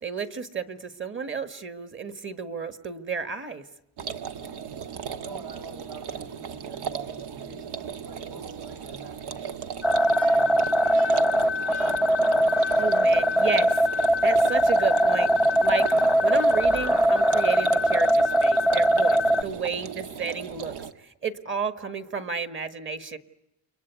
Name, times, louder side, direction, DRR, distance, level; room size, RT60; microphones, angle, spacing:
voice 1, 0.0-3.6 12.7-15.9 16.2-23.2, right 5 dB, 30° right, 8 dB, 1.7 m, -32 dB
sound 1, 4.0-20.9, right 7 dB, 85° right, 1.6 m, -36 dB
voice 2, 5.1-11.2, right 4 dB, 65° right, 3 dB, 7.7 m, -46 dB
sound 2, 9.8-19.4, equal, 5° right, 1.0 m, -21 dB
sound 3, 9.9-13.8, right 2 dB, 50° right, 5.2 m, -48 dB
30.0 x 23.5 x 8.3 m, 0.88 s
cardioid pair, 150°, 39 cm